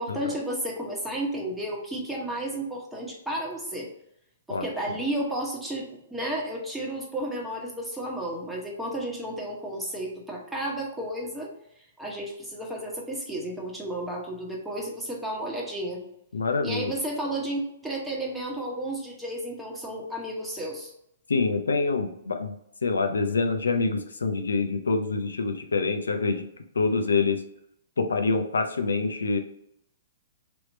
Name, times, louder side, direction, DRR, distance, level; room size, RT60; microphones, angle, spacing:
voice 1, 0.0-3.9 4.5-11.5 12.0-16.0 16.6-20.9, right 1 dB, 5° right, -3 dB, 1.1 m, -32 dB
voice 2, 16.3-16.9 21.3-22.6 22.8-26.4 26.7-27.4 28.0-29.4, left 4 dB, 85° left, 6 dB, 0.6 m, -26 dB
3.4 x 3.1 x 4.0 m, 0.77 s
hypercardioid pair, 125°, 0 cm